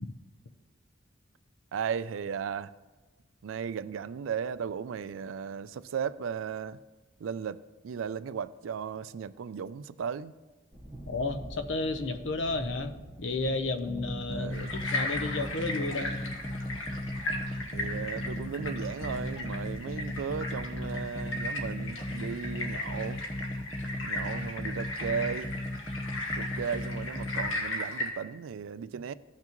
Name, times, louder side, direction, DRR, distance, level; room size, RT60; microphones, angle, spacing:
voice 1, 1.7-2.7 3.4-6.8 7.2-10.3 14.3-14.8 17.7-23.2 24.0-25.5 26.3-29.1, right 7 dB, 85° right, 0.4 m, -36 dB
sound 1, 10.7-20.9, right 1 dB, 20° right, 1.9 m, -47 dB
voice 2, 11.1-16.2, left 3 dB, 70° left, 0.7 m, -32 dB
sound 2, 13.9-27.5, left 1 dB, 20° left, 0.6 m, -37 dB
sound 3, 14.5-28.1, left 2 dB, 85° left, 1.5 m, -37 dB
15.5 x 5.9 x 3.0 m
head